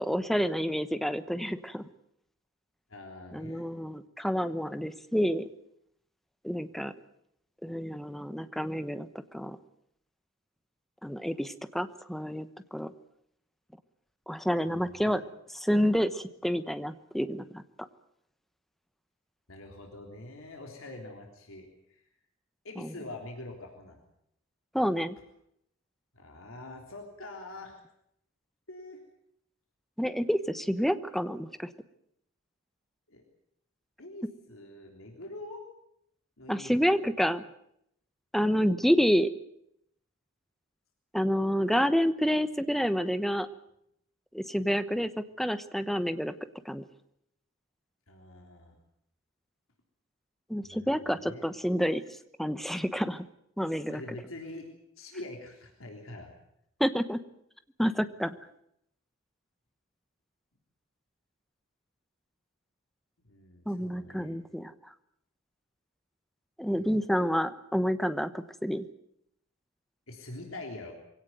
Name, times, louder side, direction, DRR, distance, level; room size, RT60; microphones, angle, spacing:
voice 1, 0.0-1.9 3.3-5.5 6.4-6.9 7.6-9.1 9.3-9.6 11.0-12.9 14.3-15.2 15.5-17.6 24.7-25.2 30.0-31.7 36.5-37.4 38.3-39.3 41.1-43.5 44.3-45.1 45.4-46.3 46.6-46.8 50.5-52.0 52.4-53.2 53.6-54.0 56.8-57.2 57.8-58.4 63.7-64.7 66.6-68.8, equal, ahead, 11 dB, 1.0 m, -28 dB
voice 2, 2.9-3.6 14.6-15.2 19.5-22.0 22.6-24.0 26.1-27.8 28.7-29.0 33.1-33.2 34.0-35.6 36.4-37.1 48.1-48.8 50.6-51.5 53.9-54.7 55.0-56.3 63.2-64.4 66.8-66.9 70.1-70.9, left 2 dB, 80° left, 2 dB, 3.5 m, -45 dB
23.0 x 17.0 x 9.3 m, 0.74 s
head